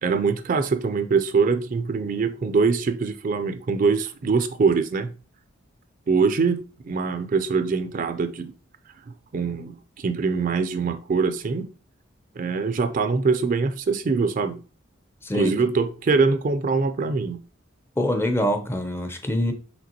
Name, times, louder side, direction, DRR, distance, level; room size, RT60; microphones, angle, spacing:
voice 1, 0.0-5.1 6.1-8.5 9.3-11.7 12.4-14.6 15.3-17.4, right 4 dB, 45° right, 0.4 m, -23 dB
voice 2, 15.2-15.5 18.0-19.5, left 1 dB, 10° left, 0.5 m, -24 dB
5.1 x 3.3 x 2.8 m
head